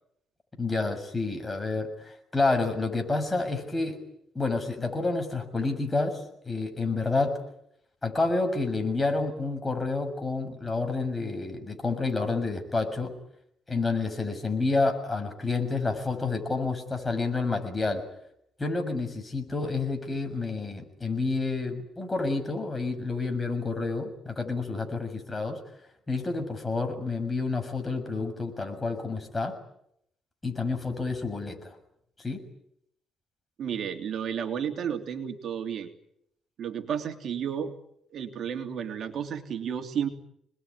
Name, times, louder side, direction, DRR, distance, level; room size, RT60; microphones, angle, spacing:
voice 1, 0.6-4.0 4.3-7.4 8.0-13.1 13.7-18.0 18.6-25.6 26.1-29.5 30.4-31.7 32.2-32.4, left 3 dB, 20° left, 5 dB, 6.8 m, -29 dB
voice 2, 33.6-35.9 36.6-37.7 38.1-40.1, right 8 dB, 65° right, 6 dB, 3.1 m, -32 dB
27.5 x 21.0 x 9.8 m, 0.75 s
cardioid pair, 90°, 0 cm